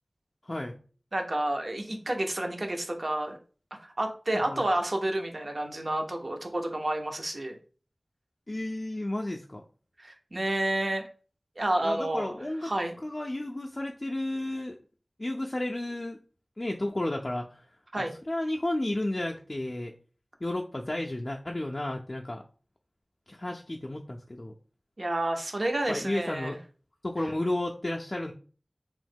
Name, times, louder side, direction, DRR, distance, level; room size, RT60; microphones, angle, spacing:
voice 1, 0.4-0.8 4.3-4.6 8.5-9.6 11.8-12.7 13.0-14.8 15.2-16.2 16.6-17.7 18.0-19.9 20.4-22.4 23.3-24.5 25.8-26.6 27.0-28.3, left 1 dB, 45° left, 0 dB, 0.3 m, -32 dB
voice 2, 1.1-3.4 4.0-7.6 10.0-11.0 11.6-12.3 12.6-13.0 17.9-18.1 25.0-26.6, right 1 dB, 65° right, 4 dB, 0.6 m, -30 dB
3.0 x 2.1 x 3.3 m, 0.40 s
wide cardioid pair, 40°, 0 cm